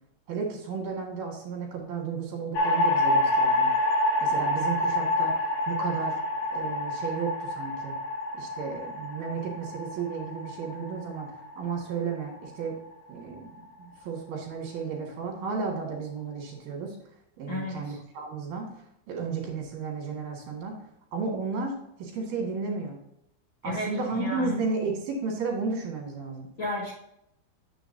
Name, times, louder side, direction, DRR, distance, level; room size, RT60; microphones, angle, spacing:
voice 1, 0.3-3.7 4.2-5.3 5.7-6.1 6.5-8.0 8.3-12.8 13.1-17.0 17.4-18.7 19.1-20.8 21.1-23.0 23.6-26.5, right 5 dB, 55° right, -1 dB, 3.6 m, -33 dB
sound 1, 2.5-12.9, left 1 dB, 60° left, 3.8 m, -27 dB
voice 2, 17.5-18.0 23.6-24.5 26.6-26.9, left 1 dB, 80° left, -5 dB, 1.1 m, -33 dB
9.0 x 7.2 x 2.8 m, 0.78 s
omnidirectional pair, 5.9 m